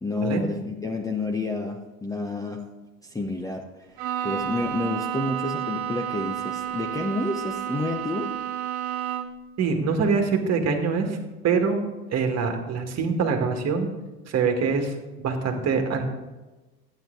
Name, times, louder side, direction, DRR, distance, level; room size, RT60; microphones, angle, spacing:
voice 1, 0.0-2.7 3.1-8.3, left 2 dB, 10° left, 2 dB, 0.7 m, -29 dB
Bowed string instrument, 4.0-9.5, right 10 dB, 50° right, 1.2 m, -31 dB
voice 2, 9.6-11.1 11.4-13.9 14.3-16.1, right 5 dB, 35° right, 4 dB, 1.8 m, -24 dB
11.5 x 9.2 x 3.9 m, 1.2 s
hypercardioid pair, 100°, 45 cm